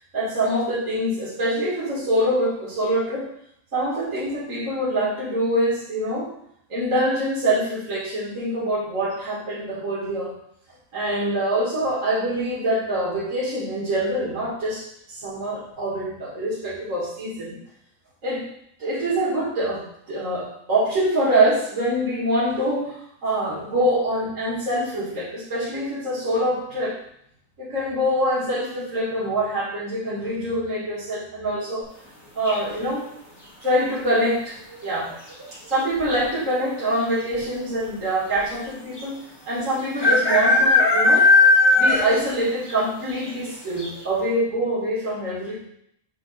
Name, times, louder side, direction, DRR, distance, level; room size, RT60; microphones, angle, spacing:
voice 1, 0.1-3.3 3.7-6.3 6.7-10.3 10.9-17.6 18.2-18.4 18.8-22.9 23.2-27.0 27.6-31.9 32.3-33.1 33.6-34.6 34.8-35.1 35.7-41.3 41.8-45.6, right 1 dB, 65° right, -9 dB, 2.5 m, -25 dB
sound 1, 32.5-32.9 34.7-35.1 35.4-35.5 35.7-36.3 37.0-37.1 37.3-37.4 39.0-39.1 40.0-42.3 42.7-42.8 43.2-43.3 43.8-43.9, left 2 dB, 20° left, 1.2 m, -17 dB
7.7 x 5.0 x 2.5 m, 0.72 s
omnidirectional pair, 1.5 m